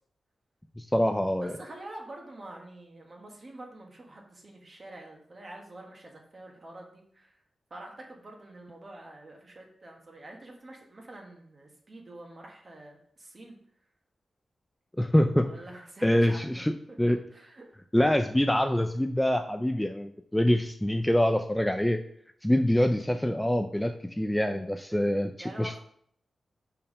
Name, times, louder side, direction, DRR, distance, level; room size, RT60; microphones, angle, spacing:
voice 1, 0.8-1.5 15.0-15.5 16.0-17.2 17.9-22.0 22.4-25.3 25.6-25.8, left 1 dB, 5° left, 6 dB, 0.3 m, -25 dB
voice 2, 1.4-7.4 7.7-13.6 15.4-16.6 16.9-17.0 17.3-17.7 24.9-25.0 25.4-25.8, right 1 dB, 35° right, 1 dB, 1.3 m, -47 dB
5.4 x 4.5 x 5.4 m, 0.66 s
wide cardioid pair, 140°, 0 cm